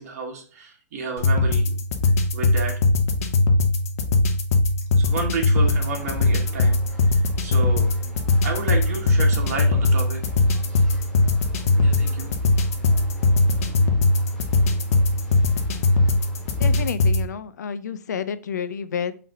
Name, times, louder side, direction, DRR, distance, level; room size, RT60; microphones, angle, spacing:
voice 1, 0.0-1.8 2.3-2.8 5.0-6.8 7.1-7.9 8.4-10.4 11.8-12.3, right 4 dB, 55° right, 1 dB, 1.7 m, -31 dB
sound 1, 1.2-17.2, left 2 dB, 60° left, 0.9 m, -20 dB
sound 2, 5.6-16.9, left 1 dB, 5° left, 1.3 m, -43 dB
voice 2, 16.6-19.1, left 7 dB, 90° left, 13 dB, 0.5 m, -30 dB
4.0 x 3.3 x 3.8 m, 0.42 s
hypercardioid pair, 150°, 9 cm